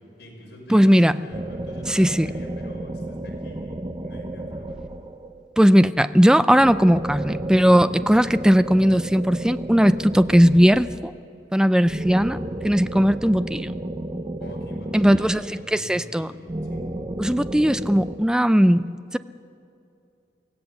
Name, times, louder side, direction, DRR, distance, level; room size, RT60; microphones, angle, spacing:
voice 1, 0.2-4.8 14.4-15.3 15.7-16.4 16.7-16.9, left 1 dB, 70° left, -3 dB, 6.2 m, -44 dB
voice 2, 0.7-1.1 1.9-2.3 5.6-11.1 11.5-13.7 14.9-16.3 17.2-19.2, equal, 5° right, 13 dB, 0.4 m, -18 dB
sound 1, 1.3-5.5 6.6-11.2 11.9-15.9 16.5-18.2, right 1 dB, 25° right, 0.7 m, -32 dB
24.5 x 16.0 x 7.0 m, 2.6 s
head